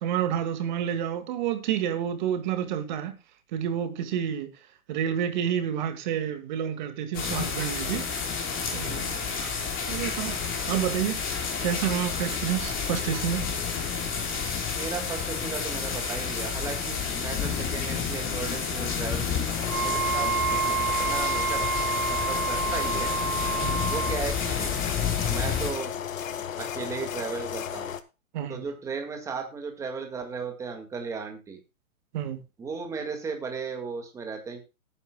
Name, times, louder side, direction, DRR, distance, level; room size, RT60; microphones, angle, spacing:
voice 1, 0.0-3.1 3.5-4.5 4.9-8.1 8.7-9.5 9.9-10.4 10.7-11.2 11.6-13.5 23.6-23.8 28.3-28.6 32.1-32.4, right 9 dB, 30° right, 2.0 m, -29 dB
sound 1, 7.1-25.7, left 6 dB, 20° left, 5.0 m, -30 dB
voice 2, 14.7-21.8 22.1-23.1 23.9-24.7 25.3-25.9 26.6-27.9 28.5-31.6 32.6-34.6, right 5 dB, 5° right, 1.8 m, -36 dB
sound 2, 19.6-28.0, left 9 dB, 65° left, 1.7 m, -35 dB
Wind instrument woodwind instrument, 19.7-24.2, right 6 dB, 90° right, 1.6 m, -28 dB
18.5 x 9.9 x 2.3 m
hypercardioid pair, 160°, 43 cm